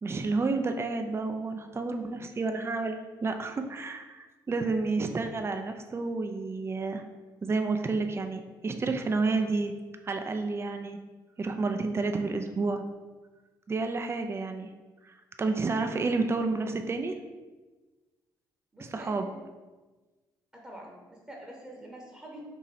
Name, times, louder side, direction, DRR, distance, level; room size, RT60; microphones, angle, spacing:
voice 1, 0.0-7.0 7.4-9.7 10.0-11.0 11.4-12.8 13.7-14.7 15.0-17.1 18.8-19.3, right 3 dB, 25° right, 6 dB, 0.4 m, -30 dB
voice 2, 18.7-19.3 20.5-22.5, right 1 dB, 10° right, -2 dB, 0.9 m, -46 dB
2.9 x 2.7 x 4.0 m, 1.3 s
hypercardioid pair, 45°, 10 cm